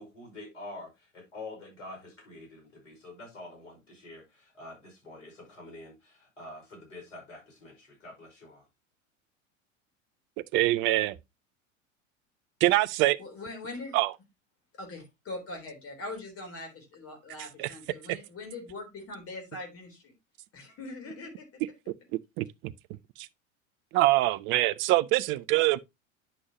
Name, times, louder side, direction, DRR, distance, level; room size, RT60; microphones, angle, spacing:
voice 1, 0.0-8.6, left 2 dB, 70° left, 5.3 m, -46 dB
voice 2, 10.5-11.1 12.6-13.2 13.9-14.1 17.6-17.7 22.4-22.7 23.2-23.3 23.9-25.8, right 17 dB, 30° right, 0.5 m, -24 dB
voice 3, 13.2-14.0 14.7-20.1 20.5-21.5, left 2 dB, 35° left, 3.8 m, -42 dB
10.0 x 6.2 x 2.9 m
figure-of-eight pair, 80°, 39 cm